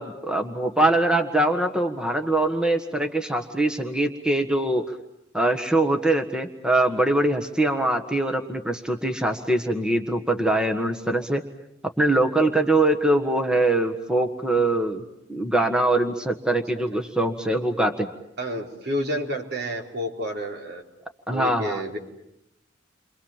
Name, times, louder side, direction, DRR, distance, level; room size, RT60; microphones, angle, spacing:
voice 1, 0.0-4.8 5.3-11.4 12.0-15.0 15.3-18.1 21.3-21.8, right 2 dB, 5° right, 4 dB, 1.6 m, -23 dB
voice 2, 18.4-20.8 21.3-22.0, equal, 60° right, 2 dB, 4.5 m, -30 dB
30.0 x 25.5 x 7.4 m, 0.81 s
head